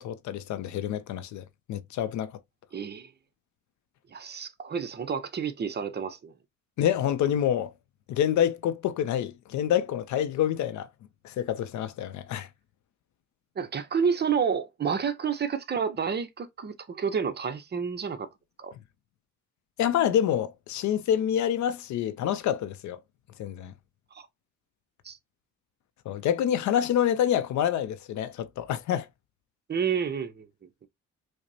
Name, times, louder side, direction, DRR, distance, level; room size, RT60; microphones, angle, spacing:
voice 1, 0.0-2.4 6.8-7.7 8.1-10.9 11.2-12.5 19.8-23.0 23.4-23.7 26.1-29.1, left 10 dB, 70° left, 0.5 m, -27 dB
voice 2, 2.7-3.1 4.1-6.3 13.6-18.3 18.6-18.7 24.1-24.3 25.0-25.2 29.7-30.5, right 6 dB, 35° right, 0.6 m, -29 dB
4.9 x 2.0 x 2.6 m
cardioid pair, 90°, 30 cm